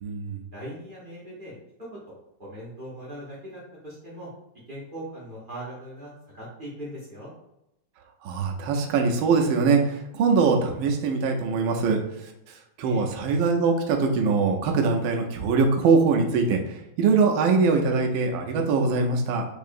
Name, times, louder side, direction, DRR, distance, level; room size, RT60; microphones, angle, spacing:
voice 1, 0.0-0.4 8.2-12.0 12.8-19.5, right 4 dB, 80° right, 2 dB, 1.4 m, -22 dB
voice 2, 0.5-1.5 1.9-2.1 2.4-4.3 4.7-7.3 12.8-13.1, equal, 60° right, -7 dB, 0.5 m, -40 dB
4.6 x 2.7 x 2.5 m, 0.84 s
omnidirectional pair, 2.2 m